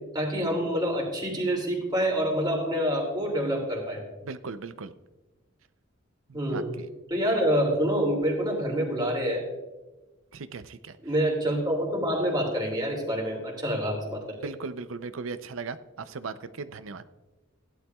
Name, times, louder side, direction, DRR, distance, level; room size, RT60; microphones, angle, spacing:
voice 1, 0.1-4.0 6.3-6.7 7.1-9.4 11.0-14.4, equal, 20° right, 0 dB, 2.6 m, -27 dB
voice 2, 4.2-4.9 6.3-6.9 10.3-11.0 14.4-17.0, right 4 dB, 85° right, 12 dB, 0.6 m, -38 dB
16.5 x 11.5 x 2.3 m, 1.1 s
head